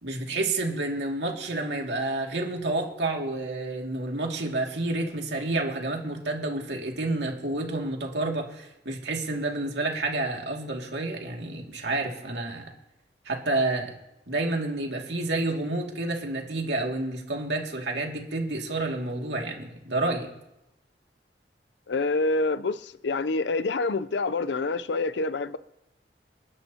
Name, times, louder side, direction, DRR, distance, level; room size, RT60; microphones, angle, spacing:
voice 1, 0.0-12.7 13.3-13.9 14.3-20.3, right 2 dB, 80° right, 2.4 m, -29 dB
voice 2, 21.9-25.6, left 3 dB, 80° left, 0.6 m, -27 dB
28.0 x 11.0 x 2.9 m
head